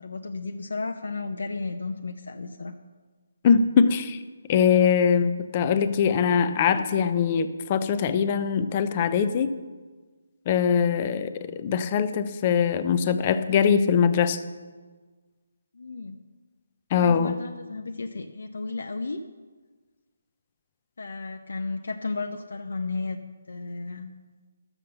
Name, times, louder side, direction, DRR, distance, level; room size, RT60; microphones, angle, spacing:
voice 1, 0.0-2.7 15.7-16.2 17.0-19.2 21.0-23.2 23.5-24.1, left 3 dB, 80° left, 3 dB, 0.8 m, -33 dB
voice 2, 3.4-4.2 4.5-9.5 10.5-14.4 16.9-17.3, left 7 dB, 25° left, 11 dB, 0.6 m, -22 dB
12.0 x 7.2 x 6.7 m, 1.4 s
hypercardioid pair, 170°, 0 cm